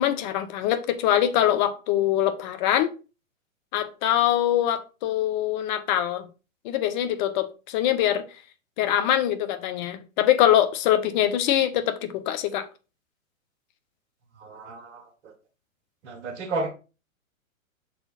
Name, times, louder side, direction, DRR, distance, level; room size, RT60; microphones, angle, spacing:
voice 1, 0.0-2.9 3.7-6.3 6.6-8.2 8.8-12.7, left 11 dB, 35° left, 0.9 m, -23 dB
voice 2, 14.4-15.0 16.0-16.7, right 3 dB, 55° right, 1.8 m, -32 dB
6.6 x 4.3 x 4.1 m
hypercardioid pair, 120°, 41 cm